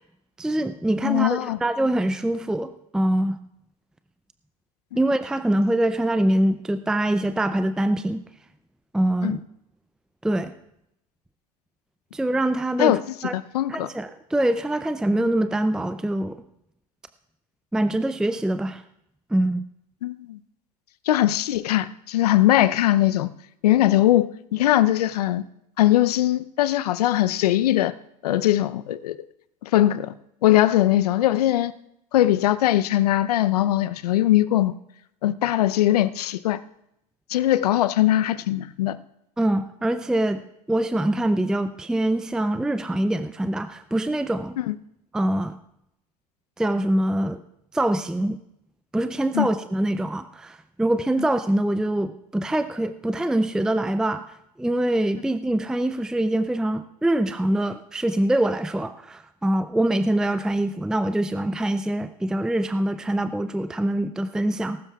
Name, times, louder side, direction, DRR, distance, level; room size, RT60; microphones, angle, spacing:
voice 1, 0.4-3.4 5.0-8.2 8.9-9.4 10.2-10.5 12.1-13.3 13.7-16.4 17.7-18.8 19.3-19.6 39.4-40.4 40.7-44.6 45.1-45.6 46.6-47.4 47.7-48.4 48.9-64.8, right 1 dB, 5° right, 11 dB, 0.5 m, -24 dB
voice 2, 1.0-1.6 9.2-9.4 12.8-13.0 13.3-13.9 20.0-20.4 21.1-23.3 23.6-25.4 25.8-27.9 28.2-29.2 29.6-30.1 30.4-31.7 32.1-34.7 35.2-36.6 37.3-39.0 44.6-44.7 49.3-49.5, left 14 dB, 75° left, 14 dB, 0.7 m, -20 dB
19.5 x 12.5 x 2.4 m, 0.79 s
hypercardioid pair, 90°, 20 cm